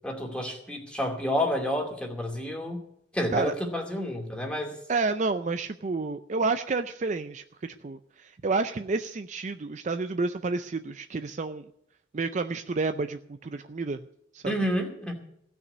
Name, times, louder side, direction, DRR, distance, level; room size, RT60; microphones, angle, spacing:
voice 1, 0.0-2.8 3.1-4.7 14.4-15.1, equal, 5° left, 1 dB, 2.4 m, -29 dB
voice 2, 4.9-11.6 12.1-14.0 14.3-14.5, right 3 dB, 40° right, 9 dB, 0.4 m, -30 dB
16.0 x 6.1 x 9.2 m, 0.74 s
head